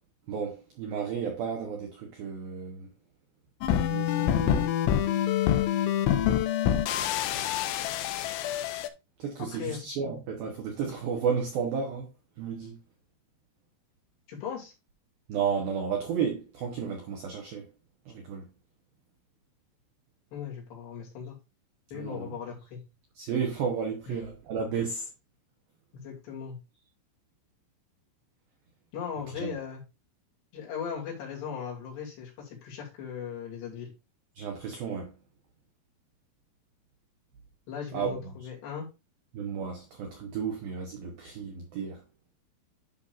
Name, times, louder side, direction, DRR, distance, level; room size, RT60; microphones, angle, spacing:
voice 1, 0.3-2.9 3.8-4.7 9.2-12.1 12.4-12.8 15.3-17.7 18.1-18.5 21.9-22.4 23.2-25.1 29.3-29.5 34.4-35.1 37.9-38.2 39.3-42.0, right 6 dB, 75° right, 2.2 m, -32 dB
sound 1, 3.6-8.9, left 10 dB, 80° left, 2.8 m, -26 dB
voice 2, 14.3-14.7 20.3-21.4 21.9-22.8 24.1-24.2 25.9-26.6 28.9-29.8 30.5-33.9 37.7-38.9, left 7 dB, 60° left, 4.5 m, -38 dB
11.0 x 5.9 x 2.6 m
omnidirectional pair, 5.8 m